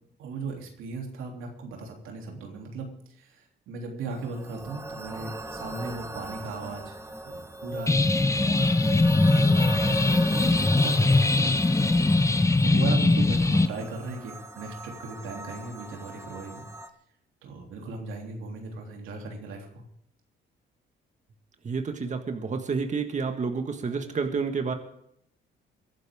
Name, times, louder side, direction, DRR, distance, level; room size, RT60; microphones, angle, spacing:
voice 1, 0.2-2.9 3.2-7.0 7.2-16.6 17.4-19.8, right 3 dB, 90° right, 1 dB, 3.3 m, -37 dB
sound 1, 4.1-16.9, right 1 dB, 15° right, 1.6 m, -37 dB
sound 2, 7.9-13.7, left 2 dB, 15° left, 0.9 m, -21 dB
voice 2, 21.6-24.7, right 5 dB, 40° right, 5 dB, 1.8 m, -29 dB
22.5 x 12.0 x 3.7 m, 0.71 s
cardioid pair, 90°, 20 cm